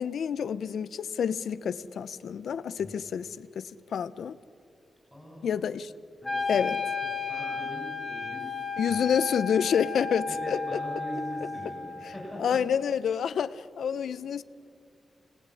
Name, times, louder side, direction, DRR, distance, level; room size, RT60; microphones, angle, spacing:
voice 1, 0.0-4.4 5.4-5.9 6.5-6.8 8.8-10.8 12.4-14.4, left 7 dB, 80° left, 0.9 m, -28 dB
voice 2, 5.1-5.5 6.2-6.7 7.3-9.0 10.3-12.6, equal, ahead, 7.5 m, -41 dB
Wind instrument woodwind instrument, 6.2-12.3, left 5 dB, 20° left, 1.9 m, -33 dB
28.5 x 19.5 x 9.9 m
wide cardioid pair, 160°, 0 cm